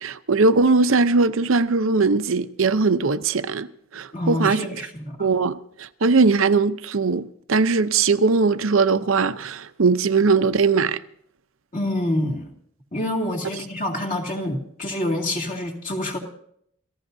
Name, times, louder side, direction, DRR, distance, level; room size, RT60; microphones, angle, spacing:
voice 1, 0.0-3.7 3.9-4.6 5.2-7.2 7.5-11.0, right 4 dB, 75° right, 0.7 m, -20 dB
voice 2, 4.1-5.3 11.7-12.5 12.9-16.2, left 1 dB, 35° left, 2.4 m, -27 dB
29.0 x 15.5 x 2.7 m
head